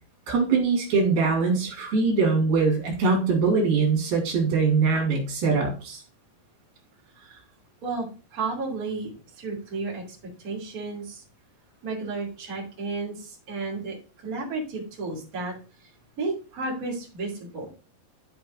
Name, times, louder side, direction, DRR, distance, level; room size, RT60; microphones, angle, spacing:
voice 1, 0.3-6.0, right 4 dB, 75° right, 0 dB, 4.2 m, -22 dB
voice 2, 7.8-9.1 9.4-10.0 10.4-11.2 11.8-14.0 14.2-15.5 16.2-17.7, right 3 dB, 25° right, -4 dB, 2.7 m, -32 dB
12.5 x 5.7 x 2.5 m, 0.34 s
omnidirectional pair, 4.4 m